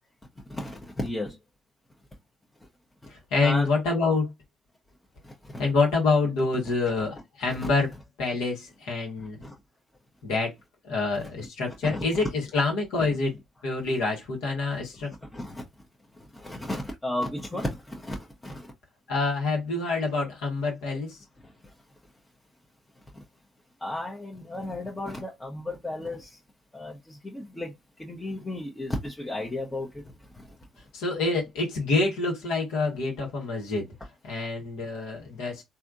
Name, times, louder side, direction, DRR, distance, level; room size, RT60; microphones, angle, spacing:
voice 1, 0.5-1.4 3.4-3.7 5.2-5.6 7.6-7.7 9.4-9.5 11.7-12.0 13.0-13.1 14.9-15.0 15.3-15.6 16.1-18.7 21.6-21.7 23.1-23.2 23.8-26.4 26.7-30.5, left 1 dB, 20° left, 0.9 m, -34 dB
voice 2, 3.1-4.3 5.6-7.9 8.2-9.5 10.2-10.5 10.8-13.4 13.6-15.1 19.1-21.2 30.9-33.9 34.2-35.6, left 3 dB, 70° left, 1.4 m, -27 dB
3.4 x 2.7 x 2.5 m
hypercardioid pair, 50°, 0 cm